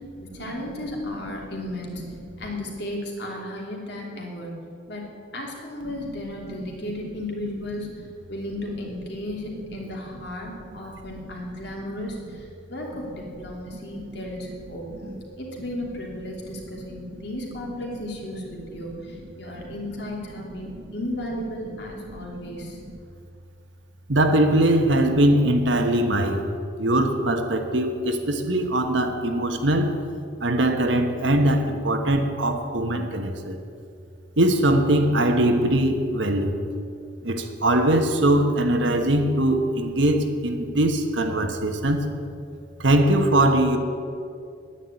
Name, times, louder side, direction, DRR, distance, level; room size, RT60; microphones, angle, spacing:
voice 1, 0.2-5.1 5.3-15.0 15.4-22.8, left 1 dB, 60° left, -1 dB, 2.9 m, -34 dB
voice 2, 16.5-17.2 20.3-20.7 22.1-22.3 24.1-26.5 26.8-30.0 30.4-33.6 34.4-36.6 37.2-42.1 42.8-43.8, right 1 dB, 75° right, 5 dB, 1.3 m, -21 dB
10.0 x 10.0 x 9.1 m, 2.4 s
head